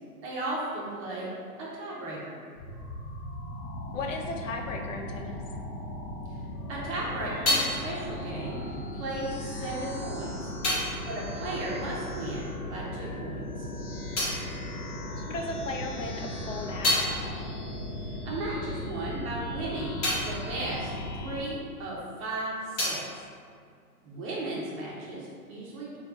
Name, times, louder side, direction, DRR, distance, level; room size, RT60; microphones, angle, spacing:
voice 1, 0.2-1.3 1.6-2.4 6.3-6.4 6.7-10.5 11.1-13.7 18.0-23.1 24.0-26.0, right 1 dB, 25° right, -5 dB, 0.6 m, -35 dB
sound 1, 2.6-21.4, left 1 dB, 75° left, 1.0 m, -37 dB
voice 2, 3.9-5.4 15.2-17.3, left 2 dB, 60° left, 3 dB, 0.6 m, -36 dB
sound 2, 6.6-12.6 12.9-15.6 16.0-22.0 22.3-24.3, left 1 dB, 25° left, 0.9 m, -34 dB
4.2 x 2.4 x 3.7 m, 2.2 s
figure-of-eight pair, 115°, 44 cm